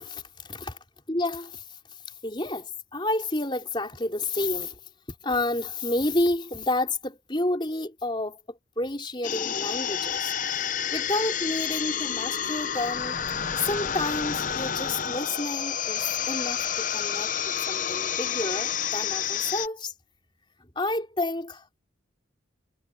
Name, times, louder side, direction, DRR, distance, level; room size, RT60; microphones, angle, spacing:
voice 1, 0.0-0.8 1.1-4.8 5.2-10.3 10.9-13.2 13.6-19.9 20.8-21.8, left 2 dB, 25° left, 4.0 m, -30 dB
sound 1, 9.2-19.7, left 8 dB, 40° left, 0.7 m, -29 dB
head